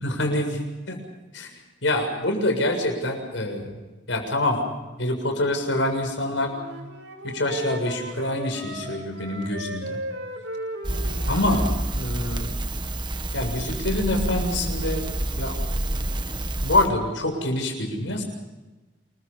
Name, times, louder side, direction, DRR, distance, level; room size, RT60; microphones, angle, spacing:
voice 1, 0.0-1.0 1.3-1.5 1.8-3.7 4.1-4.6 5.0-6.5 7.2-10.0 11.3-11.6 12.0-12.5 13.3-15.0 15.4-15.6 16.6-18.2, left 1 dB, 85° left, 4 dB, 7.1 m, -25 dB
Wind instrument woodwind instrument, 6.5-11.8, right 1 dB, 80° right, 4.9 m, -36 dB
Crackle, 10.8-16.9, right 1 dB, 25° right, 1.3 m, -28 dB
28.5 x 23.5 x 5.6 m, 1.2 s
head